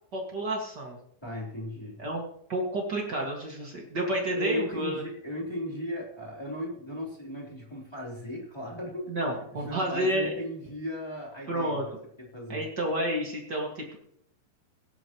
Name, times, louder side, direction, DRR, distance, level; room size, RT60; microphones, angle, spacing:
voice 1, 0.1-1.0 2.0-2.2 2.5-5.0 9.1-10.3 11.5-11.8 12.5-14.0, right 1 dB, 50° right, -1 dB, 1.2 m, -30 dB
voice 2, 1.2-2.0 4.2-9.1 9.6-11.8 12.2-12.6, left 1 dB, 5° left, -4 dB, 2.9 m, -36 dB
18.0 x 11.0 x 3.1 m, 0.70 s
omnidirectional pair, 5.3 m